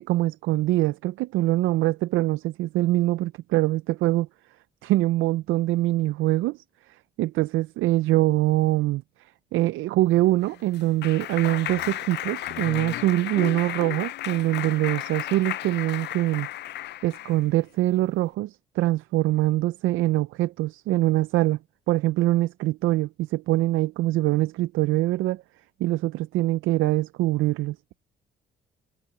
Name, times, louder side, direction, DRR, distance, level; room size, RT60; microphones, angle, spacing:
voice 1, 0.0-4.3 4.8-6.6 6.9-16.5 17.0-21.6 21.9-25.4 25.8-27.8, right 17 dB, 85° right, 0.4 m, -24 dB
sound 1, 10.0-13.8, right 10 dB, 70° right, 4.5 m, -57 dB
Clapping, 10.2-17.4, left 13 dB, 60° left, 0.4 m, -34 dB
cardioid pair, 90°, 20 cm